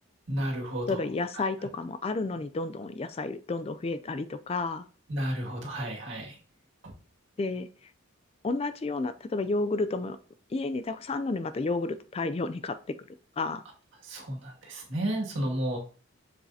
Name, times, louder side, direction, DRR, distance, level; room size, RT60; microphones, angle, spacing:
voice 1, 0.3-1.0 1.4-1.5 5.1-6.4 14.0-15.8, right 1 dB, 60° right, -1 dB, 2.1 m, -32 dB
voice 2, 0.9-4.9 7.4-7.7 8.4-10.2 10.5-12.8 13.4-13.6, left 3 dB, 30° left, 12 dB, 0.3 m, -31 dB
7.3 x 7.0 x 2.7 m, 0.39 s
head